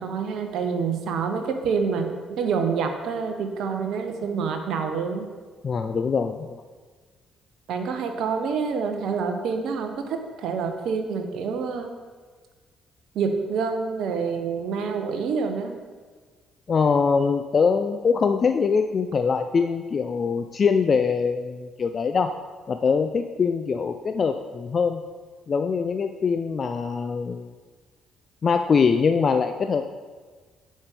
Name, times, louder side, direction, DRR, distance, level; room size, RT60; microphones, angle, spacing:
voice 1, 0.0-5.3 7.7-11.9 13.1-15.8, right 5 dB, 65° right, 5 dB, 0.8 m, -27 dB
voice 2, 5.6-6.6 16.7-22.4 22.7-25.0 25.5-27.6 28.4-29.9, left 5 dB, 45° left, 7 dB, 0.4 m, -23 dB
9.4 x 6.4 x 3.4 m, 1.4 s
figure-of-eight pair, 45°, 0 cm